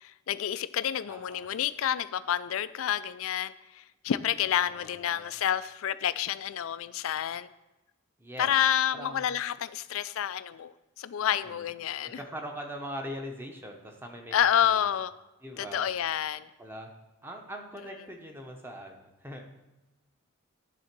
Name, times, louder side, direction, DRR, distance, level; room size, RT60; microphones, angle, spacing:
voice 1, 0.0-7.5 8.4-12.2 14.3-15.1 15.6-16.5, left 10 dB, 70° left, 15 dB, 0.4 m, -29 dB
voice 2, 1.1-1.5 4.6-5.3 8.2-8.5 8.9-9.3 11.3-11.7 12.0-14.4 14.6-14.8 15.4-15.9 16.6-16.9 17.2-19.4, equal, 10° right, 2 dB, 0.9 m, -41 dB
10.0 x 3.7 x 6.0 m, 1.0 s
head